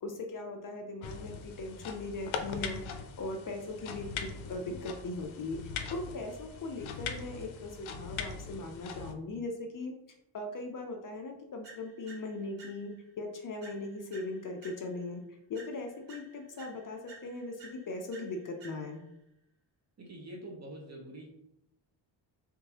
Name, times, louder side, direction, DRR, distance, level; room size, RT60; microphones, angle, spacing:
voice 1, 0.0-9.9 10.3-19.0, left 2 dB, 45° left, 3 dB, 0.6 m, -39 dB
sound 1, 1.0-9.1, left 6 dB, 85° left, 0.6 m, -41 dB
sound 2, 11.6-13.1 13.6-15.2 15.5-19.1, right 3 dB, 70° right, 1.1 m, -54 dB
voice 2, 20.0-21.3, right 1 dB, 35° right, 0 dB, 1.0 m, -45 dB
3.6 x 3.5 x 2.9 m, 0.82 s
cardioid pair, 130°, 46 cm